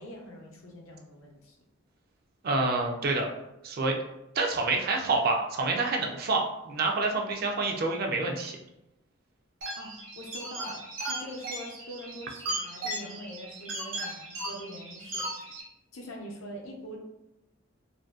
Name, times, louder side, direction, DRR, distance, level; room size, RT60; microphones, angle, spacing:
voice 1, 0.0-1.6 9.7-15.3 15.9-17.0, equal, 70° left, 0 dB, 0.6 m, -43 dB
voice 2, 2.4-3.3 3.6-3.9 4.4-8.6, right 3 dB, 45° right, 1 dB, 0.3 m, -27 dB
sound 1, 9.6-15.6, right 1 dB, 60° right, 0.7 m, -37 dB
2.5 x 2.2 x 2.3 m, 0.88 s
head